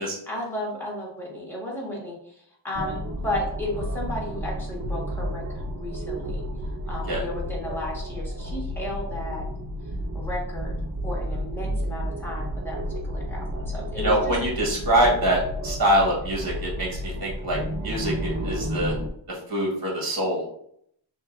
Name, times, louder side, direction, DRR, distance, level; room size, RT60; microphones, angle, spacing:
voice 1, 0.0-2.2 2.6-6.4 6.9-9.4 10.1-10.7 11.0-12.8 13.1-14.4, left 1 dB, 5° left, -3 dB, 1.7 m, -34 dB
sound 1, 2.7-19.1, equal, 35° right, 0.6 m, -31 dB
voice 2, 14.0-18.9 19.3-20.4, right 1 dB, 50° right, -3 dB, 1.8 m, -24 dB
6.4 x 2.7 x 2.6 m, 0.70 s
wide cardioid pair, 100°, 46 cm